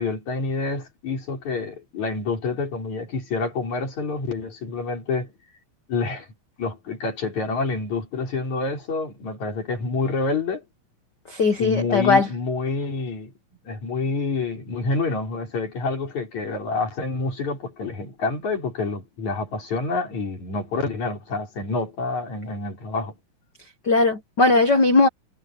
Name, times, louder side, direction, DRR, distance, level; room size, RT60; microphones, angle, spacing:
voice 1, 0.0-5.3 5.9-6.3 6.6-10.6 11.6-13.3 13.6-23.2, left 3 dB, 55° left, 5.7 m, -27 dB
voice 2, 11.3-12.3 23.8-25.1, left 3 dB, 70° left, 1.0 m, -18 dB
omnidirectional pair, 4.1 m